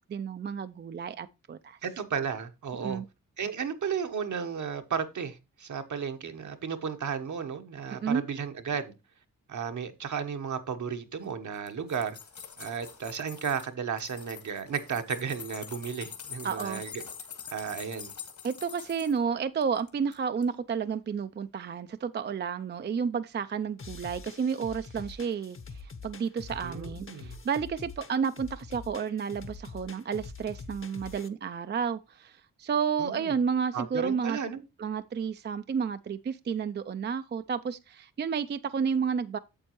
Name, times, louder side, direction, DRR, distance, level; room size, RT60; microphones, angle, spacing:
voice 1, 0.1-1.8 2.8-3.0 7.9-8.2 16.4-16.8 18.4-34.4 34.8-39.4, right 6 dB, 35° right, 0.4 m, -31 dB
voice 2, 1.8-3.0 3.4-8.9 9.5-12.2 12.6-17.0 17.5-18.1 26.6-27.4 33.0-33.4 33.7-34.6, right 6 dB, 65° right, 1.1 m, -34 dB
sound 1, 11.5-13.7 14.0-19.2 19.6-20.2 20.4-20.5, left 7 dB, 65° left, 1.8 m, -45 dB
sound 2, 23.8-31.3, left 4 dB, 40° left, 0.9 m, -45 dB
8.8 x 7.2 x 3.0 m
cardioid pair, 80°, 32 cm